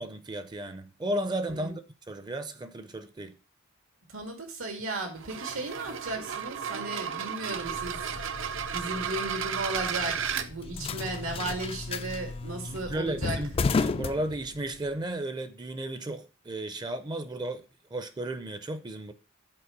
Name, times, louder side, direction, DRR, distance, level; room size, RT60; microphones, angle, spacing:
voice 1, 0.0-1.8 2.1-3.4 12.6-17.7 17.9-19.1, right 1 dB, 20° right, 0.5 m, -34 dB
voice 2, 4.1-8.1 8.3-8.4 8.7-13.4, right 2 dB, 90° right, 2.1 m, -35 dB
sound 1, 5.2-10.5, right 7 dB, 65° right, 0.6 m, -34 dB
sound 2, 7.6-14.9, left 4 dB, 30° left, 0.3 m, -34 dB
7.6 x 4.2 x 5.8 m
head